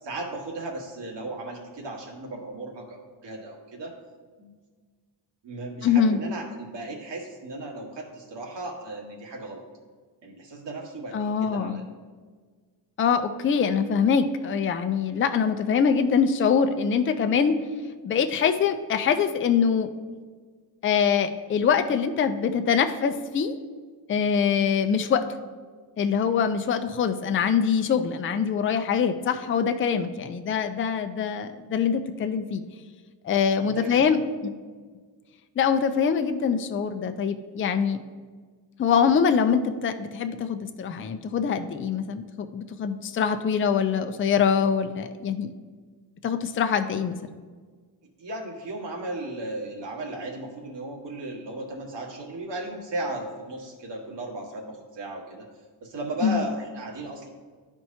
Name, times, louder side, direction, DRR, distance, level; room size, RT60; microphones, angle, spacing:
voice 1, 0.0-4.0 4.4-4.5 5.4-9.6 10.2-11.8 33.5-34.2 48.2-55.5 55.8-57.3, right 2 dB, 70° right, 0 dB, 1.6 m, -36 dB
voice 2, 5.8-6.2 11.1-11.8 13.0-17.6 18.0-19.9 20.8-23.6 24.1-25.3 26.0-32.6 33.2-34.5 35.6-38.0 38.8-45.5 46.2-47.2 56.2-56.4, left 6 dB, 30° left, 7 dB, 0.4 m, -24 dB
12.5 x 4.5 x 2.7 m, 1.5 s
cardioid pair, 110°, 45 cm